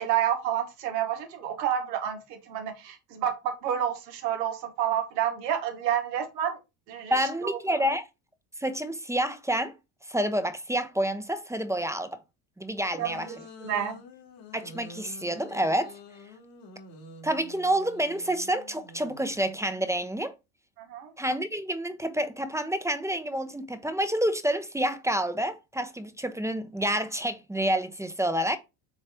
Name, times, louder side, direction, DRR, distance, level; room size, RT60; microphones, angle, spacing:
voice 1, 0.0-6.6 6.9-7.9 13.0-14.0 20.8-21.1, right 10 dB, 90° right, 1.7 m, -30 dB
voice 2, 7.1-8.0 8.6-9.7 10.1-12.2 12.6-13.3 14.5-15.9 17.2-20.3 21.2-28.6, right 1 dB, 5° right, 0.8 m, -28 dB
sound 1, 13.0-19.4, left 2 dB, 90° left, 3.0 m, -47 dB
7.6 x 3.2 x 4.5 m
supercardioid pair, 90°, 49 cm